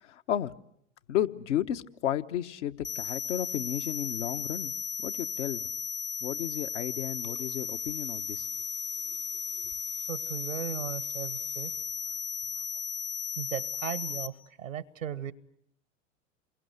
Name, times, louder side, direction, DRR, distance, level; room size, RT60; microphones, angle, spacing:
voice 1, 0.0-0.5 1.1-4.7 5.0-5.7 6.2-8.5, left 11 dB, 65° left, 8 dB, 1.2 m, -33 dB
sound 1, 2.8-14.3, left 8 dB, 35° left, 1.0 m, -35 dB
sound 2, 6.9-13.0 13.5-13.6, left 7 dB, 80° left, 7.7 m, -59 dB
voice 2, 10.1-11.7 13.4-15.3, right 9 dB, 85° right, 18 dB, 1.2 m, -37 dB
28.5 x 22.5 x 8.0 m, 0.73 s
figure-of-eight pair, 80°, 38 cm